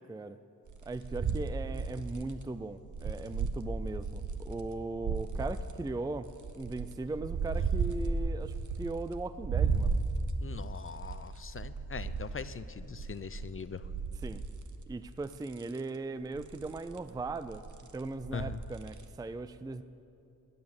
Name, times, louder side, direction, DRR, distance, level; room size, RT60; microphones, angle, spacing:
sound 1, 0.7-4.6 5.0-5.7 6.3-9.1 9.4-14.9 15.3-15.8 16.3-19.0, right 4 dB, 55° right, 1.1 m, -35 dB
voice 1, 0.9-6.3 6.6-10.0 14.1-14.4 14.9-17.6 17.9-19.8, right 3 dB, 10° right, 13 dB, 0.4 m, -38 dB
voice 2, 10.4-13.8 18.3-18.6, left 6 dB, 35° left, 13 dB, 0.6 m, -41 dB
17.5 x 9.7 x 7.2 m, 2.8 s
cardioid pair, 80°, 36 cm